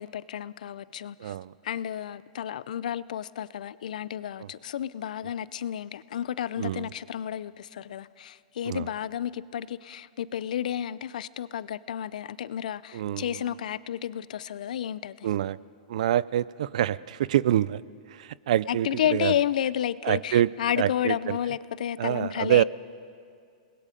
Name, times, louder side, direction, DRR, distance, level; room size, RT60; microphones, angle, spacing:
voice 1, 0.0-1.3 1.6-15.3 18.7-22.6, left 10 dB, 70° left, 18 dB, 0.5 m, -31 dB
voice 2, 1.2-1.5 4.4-4.5 6.6-6.9 8.6-8.9 12.9-13.4 15.2-15.6 15.9-17.8 18.1-19.3 20.0-20.5 20.8-21.4 22.0-22.6, right 12 dB, 60° right, 21 dB, 0.4 m, -26 dB
28.5 x 20.5 x 5.2 m, 2.3 s
supercardioid pair, 170°, 4 cm